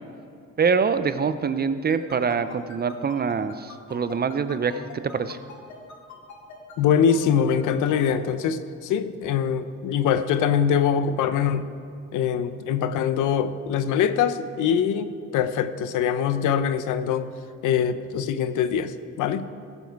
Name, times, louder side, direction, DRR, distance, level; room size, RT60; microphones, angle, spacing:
voice 1, 0.6-5.4, right 5 dB, 30° right, 12 dB, 0.6 m, -25 dB
sound 1, 1.9-8.1, left 5 dB, 70° left, 2.0 m, -43 dB
voice 2, 6.8-11.7 12.1-17.3 17.6-19.5, left 8 dB, 85° left, 12 dB, 0.7 m, -23 dB
15.5 x 7.2 x 4.6 m, 2.5 s
cardioid pair, 90°, 30 cm